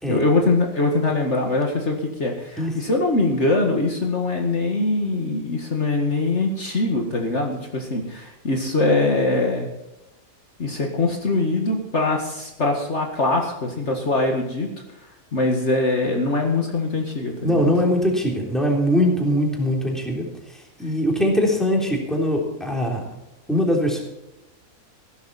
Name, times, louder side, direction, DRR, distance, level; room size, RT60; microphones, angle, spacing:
voice 1, 0.1-9.7 10.6-14.7 15.3-17.7, left 2 dB, 55° left, 1 dB, 2.0 m, -22 dB
voice 2, 17.4-23.0 23.5-24.0, equal, ahead, -1 dB, 3.4 m, -22 dB
16.0 x 12.5 x 4.2 m, 0.96 s
omnidirectional pair, 1.5 m